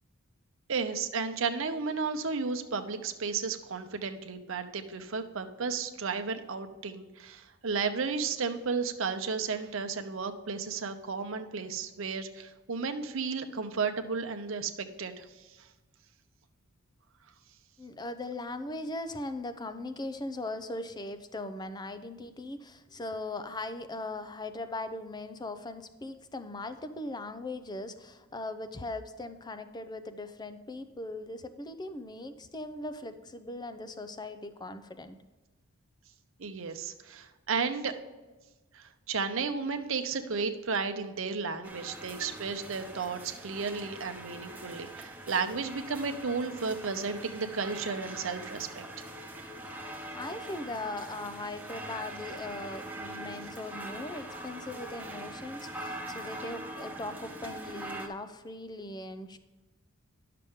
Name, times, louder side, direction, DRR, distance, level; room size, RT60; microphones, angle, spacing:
voice 1, 0.7-15.3 15.6-15.7 36.4-37.9 38.7-48.8, right 5 dB, 65° right, 7 dB, 0.8 m, -33 dB
voice 2, 17.8-35.2 50.1-59.4, left 2 dB, 20° left, 11 dB, 0.6 m, -39 dB
sound 1, 41.6-58.1, right 1 dB, 10° right, 1.0 m, -42 dB
11.0 x 6.7 x 3.6 m, 1.2 s
head